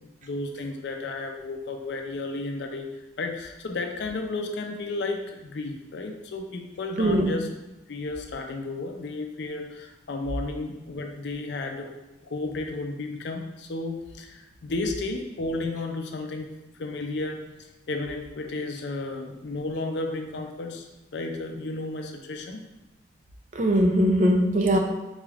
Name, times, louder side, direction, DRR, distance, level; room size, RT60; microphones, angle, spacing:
voice 1, 0.0-2.9 3.2-7.5 7.9-16.5 16.8-17.4 17.9-20.9 21.1-22.6, left 2 dB, 65° left, 4 dB, 0.4 m, -33 dB
voice 2, 7.0-7.3 23.5-24.8, equal, 40° right, 2 dB, 0.4 m, -21 dB
3.9 x 3.2 x 2.4 m, 1.0 s
head